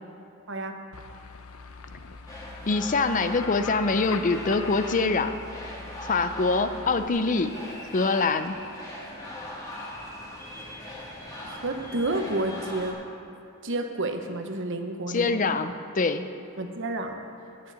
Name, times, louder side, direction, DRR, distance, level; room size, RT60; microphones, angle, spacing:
voice 1, 0.5-0.8 11.4-13.0 13.6-15.6 16.6-17.2, right 2 dB, 60° right, 5 dB, 1.0 m, -30 dB
sound 1, 0.9-7.1, left 4 dB, 90° left, 0.7 m, -41 dB
sound 2, 2.3-12.9, left 1 dB, 20° left, 2.2 m, -40 dB
voice 2, 2.7-5.4 6.1-7.5 7.9-8.6 15.1-16.3, left 3 dB, 40° left, 10 dB, 0.5 m, -24 dB
10.5 x 6.7 x 8.7 m, 2.9 s
head